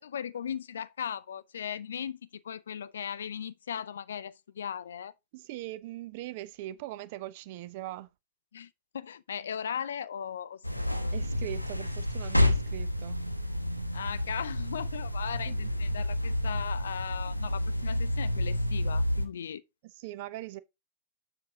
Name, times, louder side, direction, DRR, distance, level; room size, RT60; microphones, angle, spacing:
voice 1, 0.0-5.1 8.5-11.1 13.9-19.6, left 8 dB, 65° left, 0.5 m, -38 dB
voice 2, 5.3-8.1 11.1-13.2 15.5-15.6 19.8-20.6, right 15 dB, 50° right, 0.7 m, -41 dB
sound 1, 10.6-19.3, left 1 dB, 90° left, 0.8 m, -30 dB
7.5 x 6.2 x 3.8 m
figure-of-eight pair, 90°, 0 cm